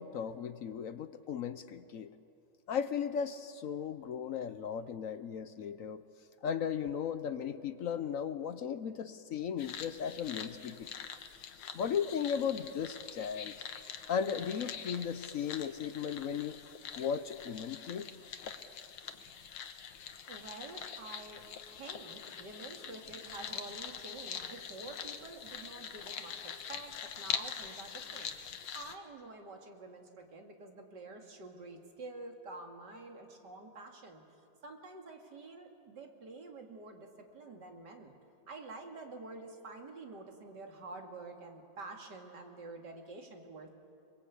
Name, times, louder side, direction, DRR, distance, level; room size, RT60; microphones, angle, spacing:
voice 1, 0.0-2.1 2.7-6.0 6.4-10.9 11.7-13.6 14.1-16.6 17.0-18.1, left 7 dB, 65° left, 12 dB, 0.8 m, -36 dB
sound 1, 9.6-29.0, left 7 dB, 85° left, 2.0 m, -44 dB
voice 2, 20.3-28.3 28.7-34.2 34.6-38.1 38.5-43.7, right 3 dB, 55° right, 3 dB, 3.0 m, -48 dB
29.5 x 21.5 x 8.4 m, 2.6 s
omnidirectional pair, 2.2 m